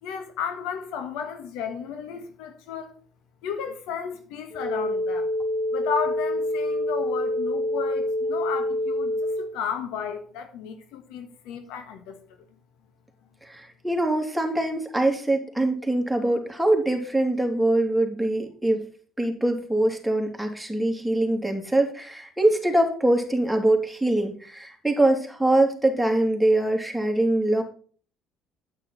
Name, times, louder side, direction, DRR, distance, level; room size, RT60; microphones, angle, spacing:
voice 1, 0.0-2.9 3.4-5.3 5.7-12.2, left 7 dB, 80° left, 1.4 m, -33 dB
sound 1, 4.5-9.5, left 1 dB, 15° left, 2.9 m, -26 dB
voice 2, 13.4-18.8 19.2-27.6, right 1 dB, ahead, 2.8 m, -23 dB
8.9 x 8.9 x 4.1 m
hypercardioid pair, 65°, 0 cm